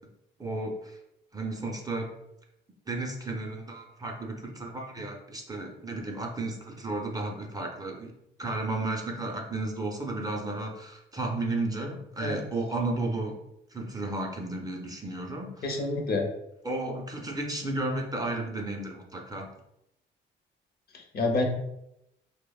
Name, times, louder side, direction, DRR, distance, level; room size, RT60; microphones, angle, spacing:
voice 1, 0.4-1.0 1.3-2.1 2.9-8.1 8.4-13.4 13.7-15.7 16.6-19.5, right 2 dB, 20° right, 0 dB, 0.4 m, -33 dB
voice 2, 15.6-16.2 20.9-21.4, left 2 dB, 50° left, 2 dB, 0.5 m, -28 dB
2.9 x 2.0 x 2.3 m, 0.83 s
cardioid pair, 90°, 20 cm